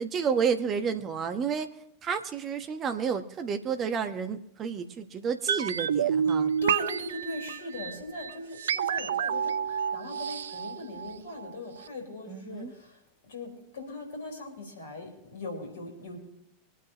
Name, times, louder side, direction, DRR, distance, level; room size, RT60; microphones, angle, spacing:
voice 1, 0.0-1.7 2.0-6.5 12.3-12.7, right 6 dB, 30° right, 7 dB, 1.2 m, -30 dB
sound 1, 5.5-11.5 11.8-11.9, right 7 dB, 70° right, 0.5 m, -29 dB
voice 2, 6.6-13.0 13.3-16.2, left 1 dB, 70° left, 2 dB, 4.8 m, -39 dB
24.5 x 9.4 x 3.0 m, 0.77 s
figure-of-eight pair, 85°, 0 cm